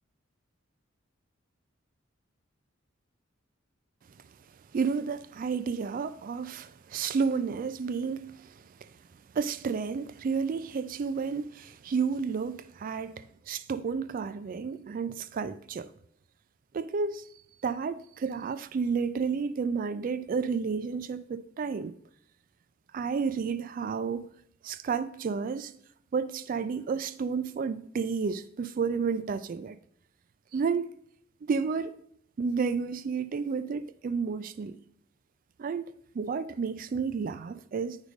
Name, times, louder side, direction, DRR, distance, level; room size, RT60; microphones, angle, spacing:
voice 1, 4.7-8.9 9.3-15.9 16.7-17.3 17.6-21.9 22.9-24.3 24.6-25.7 26.1-29.8 30.5-30.9 31.4-31.9 32.4-34.8 35.6-38.0, right 5 dB, 45° right, 0.3 m, -31 dB
8.1 x 5.0 x 5.0 m
head